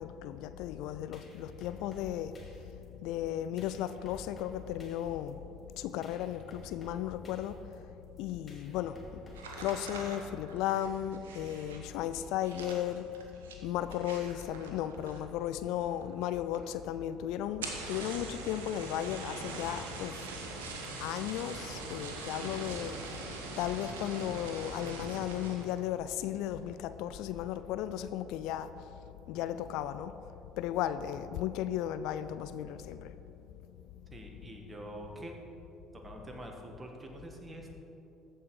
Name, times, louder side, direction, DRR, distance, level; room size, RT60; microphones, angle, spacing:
voice 1, 0.0-2.3 3.0-5.4 5.8-7.6 8.2-9.0 9.6-13.0 13.6-20.2 21.0-22.9 23.6-28.7 29.3-30.1 30.6-33.1, left 11 dB, 65° left, 12 dB, 0.3 m, -35 dB
sound 1, 0.8-10.5, equal, 30° left, 2.2 m, -54 dB
sound 2, 9.3-15.4 15.7-16.2 16.5-16.6 16.9-17.0 17.5-25.8 26.2-26.6 27.0-27.4, right 3 dB, 80° right, 1.1 m, -43 dB
voice 2, 34.1-35.3 36.0-37.8, right 1 dB, 25° right, 2 dB, 1.8 m, -45 dB
14.0 x 5.5 x 4.9 m, 3.0 s
hypercardioid pair, 55°, 0 cm